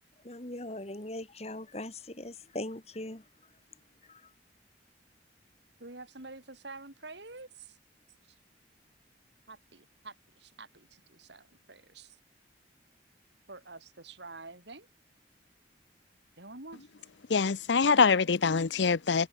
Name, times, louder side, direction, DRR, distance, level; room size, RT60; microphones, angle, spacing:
voice 1, 0.2-3.2 4.0-4.3, left 1 dB, 35° left, 2.4 m, -40 dB
voice 2, 5.8-7.8 8.2-8.4 9.5-12.2 13.5-14.9 16.4-16.9, right 3 dB, 70° right, 3.5 m, -48 dB
voice 3, 17.3-19.3, left 5 dB, 75° left, 0.6 m, -24 dB
head